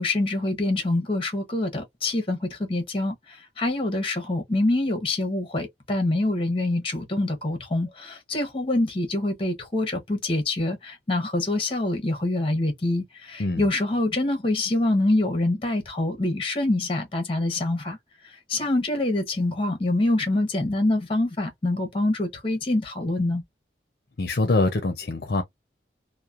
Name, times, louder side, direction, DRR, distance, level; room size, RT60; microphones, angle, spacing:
voice 1, 0.0-18.0 18.2-23.4, left 2 dB, 30° left, 1.0 m, -25 dB
voice 2, 24.2-25.4, left 2 dB, 60° left, 0.6 m, -24 dB
3.0 x 2.1 x 2.4 m
head